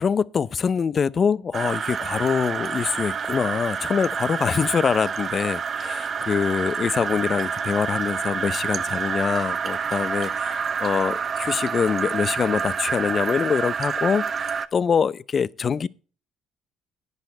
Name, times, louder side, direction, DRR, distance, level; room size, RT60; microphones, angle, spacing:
voice 1, 0.0-15.9, left 6 dB, 45° left, 0.6 m, -24 dB
sound 1, 1.5-14.7, right 6 dB, 45° right, 0.8 m, -28 dB
10.5 x 9.7 x 3.9 m
supercardioid pair, 70°, 0 cm